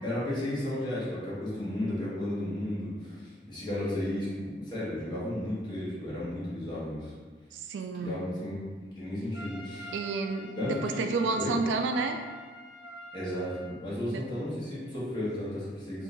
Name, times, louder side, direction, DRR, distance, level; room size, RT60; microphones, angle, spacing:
voice 1, 0.0-7.1 8.0-9.9 10.6-11.1 11.3-11.5 13.1-16.0, left 1 dB, 25° left, -9 dB, 1.0 m, -34 dB
voice 2, 7.5-8.2 9.9-12.2 14.1-14.2 15.9-16.0, right 3 dB, 85° right, 5 dB, 0.3 m, -30 dB
Trumpet, 9.3-13.8, equal, 80° left, 0.6 m, -45 dB
3.6 x 2.5 x 2.5 m, 1.4 s
head